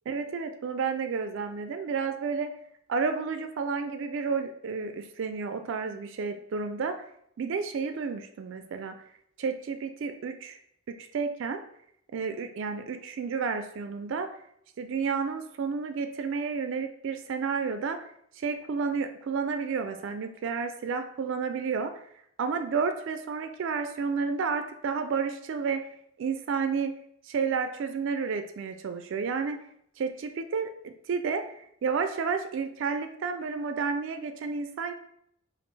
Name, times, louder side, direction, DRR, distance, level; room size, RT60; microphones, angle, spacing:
voice 1, 0.1-2.5 2.9-6.9 7.4-8.9 9.4-10.6 10.9-11.6 12.1-14.3 14.8-18.0 18.4-21.9 22.4-25.8 26.2-26.9 27.3-29.6 30.0-31.6 31.8-34.9, right 5 dB, 65° right, 8 dB, 0.3 m, -31 dB
5.1 x 2.5 x 3.2 m, 0.70 s
head